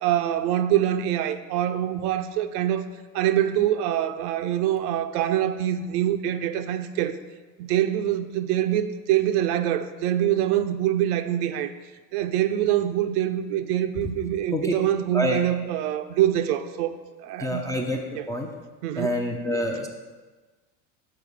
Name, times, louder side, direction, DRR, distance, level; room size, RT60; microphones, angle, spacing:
voice 1, 0.0-2.9 3.1-7.2 7.6-11.7 12.1-17.7 18.2-18.3 18.8-19.1, right 11 dB, 70° right, 10 dB, 0.6 m, -25 dB
voice 2, 17.4-18.5 19.0-19.9, equal, 5° left, 0 dB, 0.4 m, -27 dB
6.8 x 4.2 x 5.0 m, 1.3 s
supercardioid pair, 105°, 49 cm